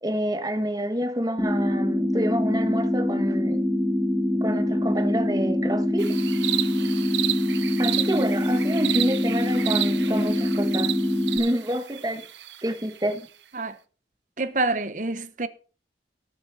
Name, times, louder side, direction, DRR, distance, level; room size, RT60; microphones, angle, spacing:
voice 1, 0.0-3.7 4.4-6.1 7.8-10.9 11.3-12.2 12.6-13.2, right 1 dB, 20° right, 1.4 m, -28 dB
sound 1, 1.4-11.4, left 1 dB, ahead, 2.1 m, -24 dB
sound 2, 6.0-13.1, right 13 dB, 85° right, 0.8 m, -31 dB
voice 2, 14.4-15.5, right 2 dB, 45° right, 1.0 m, -27 dB
17.5 x 7.3 x 4.2 m
head